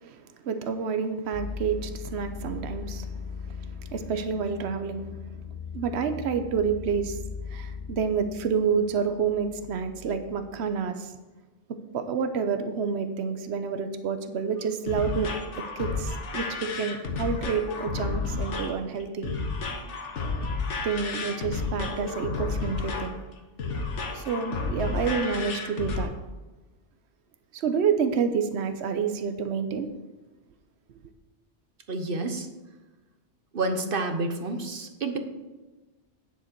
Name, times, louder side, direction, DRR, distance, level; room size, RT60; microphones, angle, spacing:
voice 1, 0.0-3.1 3.5-5.1 5.7-7.2 7.5-11.1 11.9-15.3 15.6-19.3 20.8-23.2 24.1-26.1 27.5-29.9, right 6 dB, 70° right, 8 dB, 1.1 m, -29 dB
sound 1, 1.3-10.9, left 5 dB, 60° left, 1.2 m, -39 dB
sound 2, 14.6-26.1, left 4 dB, 85° left, 1.4 m, -31 dB
voice 2, 31.9-32.5 33.5-35.2, right 2 dB, 50° right, 6 dB, 1.2 m, -29 dB
10.0 x 7.2 x 4.6 m, 1.2 s
omnidirectional pair, 1.2 m